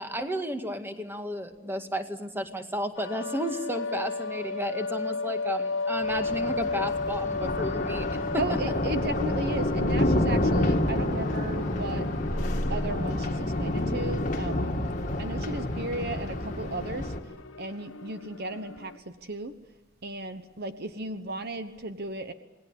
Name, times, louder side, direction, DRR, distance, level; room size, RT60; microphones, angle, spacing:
voice 1, 0.0-8.4, equal, 10° right, 6 dB, 1.9 m, -33 dB
sound 1, 3.0-19.0, left 3 dB, 70° left, 1.2 m, -35 dB
Thunder, 6.0-17.2, left 1 dB, 40° left, 2.0 m, -28 dB
voice 2, 8.4-12.1 12.7-14.8 15.2-17.1 17.6-19.5 20.0-22.3, right 2 dB, 50° right, 9 dB, 1.1 m, -35 dB
27.5 x 19.5 x 8.4 m, 1.2 s
head